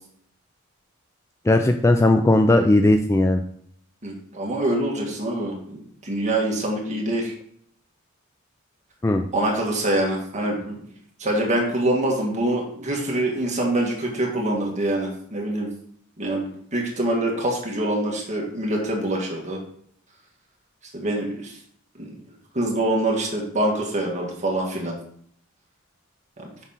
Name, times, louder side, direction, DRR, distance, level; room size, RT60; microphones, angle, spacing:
voice 1, 1.5-3.4 9.0-9.2, left 2 dB, 15° left, 6 dB, 0.3 m, -17 dB
voice 2, 4.0-7.3 9.3-10.9 11.2-15.7 16.2-19.6 20.9-21.6 22.0-22.2 22.5-25.0 26.4-26.5, right 1 dB, 35° right, -1 dB, 1.8 m, -25 dB
6.0 x 4.2 x 5.6 m, 0.65 s
head